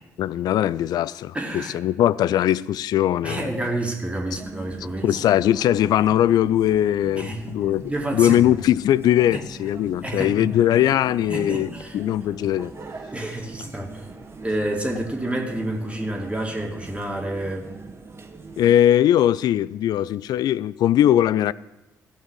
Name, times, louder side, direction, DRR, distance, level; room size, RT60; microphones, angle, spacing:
voice 1, 0.2-3.5 5.0-7.8 8.1-12.7 18.6-21.5, left 11 dB, 55° left, 0.3 m, -20 dB
voice 2, 1.3-1.8 3.2-5.2 7.1-7.5 7.8-8.5 9.3-9.4 10.0-10.4 11.3-12.0 13.1-14.1 14.4-17.7, right 1 dB, 15° right, 2.3 m, -29 dB
sound 1, 4.3-18.7, right 3 dB, 30° right, 1.7 m, -42 dB
15.5 x 5.6 x 6.3 m
figure-of-eight pair, 40°, 8 cm